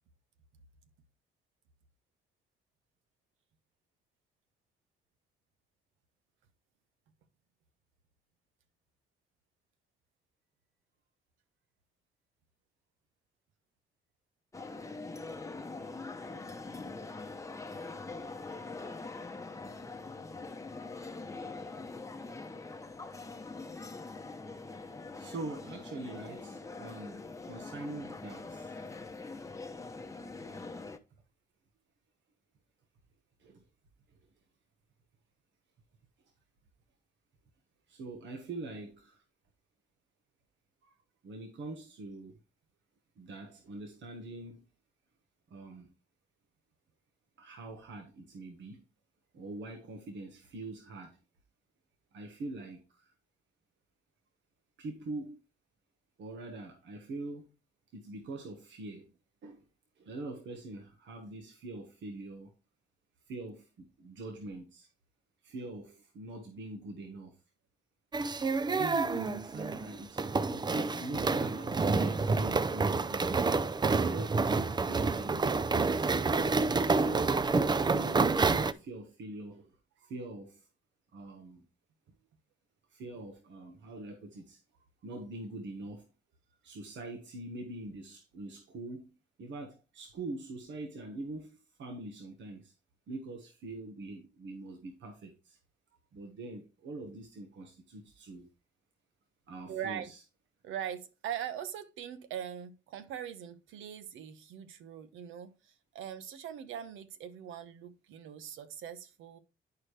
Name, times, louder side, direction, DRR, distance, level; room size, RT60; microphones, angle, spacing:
sound 1, 14.5-31.0, left 3 dB, 15° left, 0.8 m, -43 dB
voice 1, 25.2-28.8 33.4-33.6 34.1-34.2 37.9-39.2 41.2-42.4 43.2-44.6 45.5-45.9 47.4-48.8 49.3-51.2 52.1-53.1 54.8-55.4 56.2-57.5 57.9-59.1 59.4-59.7 60.0-62.5 63.3-64.9 65.4-67.4 68.6-73.3 73.9-76.2 76.9-79.8 80.0-80.7 81.1-81.6 82.9-84.6 85.0-86.0 86.6-89.1 89.4-92.7 93.1-95.6 96.1-98.5 99.5-100.2, right 2 dB, 70° right, 1.4 m, -43 dB
sound 2, 68.1-78.7, right 4 dB, 20° right, 0.5 m, -28 dB
voice 2, 99.7-100.1 100.6-109.4, right 9 dB, 90° right, 0.9 m, -41 dB
10.5 x 4.8 x 3.3 m
cardioid pair, 90°, 20 cm